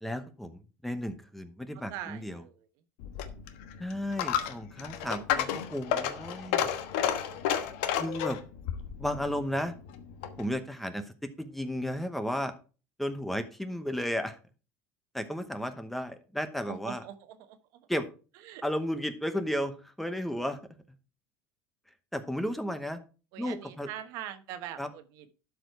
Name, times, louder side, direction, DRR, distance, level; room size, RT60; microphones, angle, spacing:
voice 1, 0.0-2.4 3.8-6.7 8.0-8.4 9.0-9.7 10.4-12.5 13.0-14.4 15.1-17.0 17.9-18.1 18.6-20.6 22.1-23.0 23.4-23.9 24.8-24.9, equal, 5° left, 10 dB, 0.9 m, -33 dB
voice 2, 1.7-2.5 16.7-17.9 18.4-18.6 23.3-25.3, right 11 dB, 70° right, 10 dB, 1.1 m, -42 dB
Coin (dropping), 3.0-10.5, left 9 dB, 90° left, 1.2 m, -32 dB
12.0 x 5.1 x 4.6 m, 0.34 s
cardioid pair, 145°, 6 cm